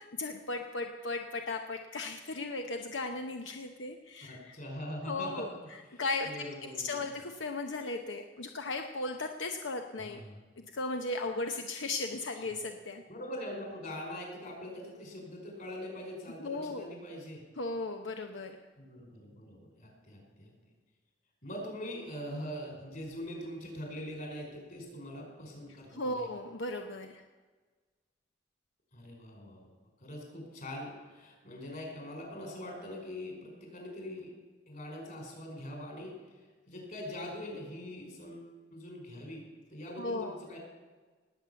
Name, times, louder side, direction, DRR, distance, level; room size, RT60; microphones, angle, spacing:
voice 1, 0.0-4.5 5.1-5.5 6.0-6.4 6.8-10.2 10.7-13.0 16.4-16.9 17.6-18.6 25.9-27.2 40.0-40.4, left 2 dB, 90° left, 5 dB, 1.0 m, -36 dB
voice 2, 4.3-5.5 5.8-7.1 10.0-10.4 13.1-17.4 18.8-20.5 21.4-26.3 28.9-29.7 30.0-34.3 34.7-39.4 39.7-40.6, left 1 dB, 50° left, 1 dB, 5.2 m, -43 dB
19.0 x 8.7 x 7.0 m, 1.3 s
head